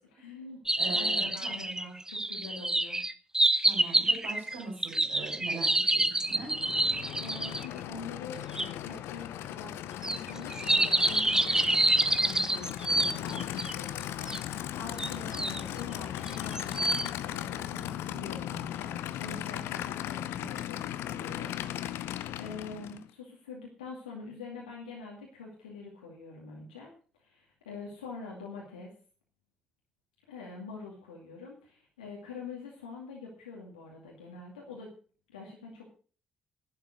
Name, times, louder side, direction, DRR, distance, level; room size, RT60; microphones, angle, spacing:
voice 1, 0.1-0.6 0.9-3.0 7.2-26.9 27.2-28.9 30.3-34.9 35.3-35.9, left 4 dB, 80° left, -2 dB, 2.3 m, -45 dB
sound 1, 0.7-7.7 8.6-8.7 10.0-13.7 14.3-14.4 15.0-15.6 16.3-17.1, right 2 dB, 15° right, 1.2 m, -27 dB
voice 2, 0.8-1.5 3.6-6.5, right 3 dB, 75° right, -4 dB, 4.3 m, -41 dB
Aircraft / Idling, 6.1-23.1, left 12 dB, 65° left, 0.7 m, -37 dB
11.5 x 10.5 x 6.2 m, 0.41 s
figure-of-eight pair, 45°, 4 cm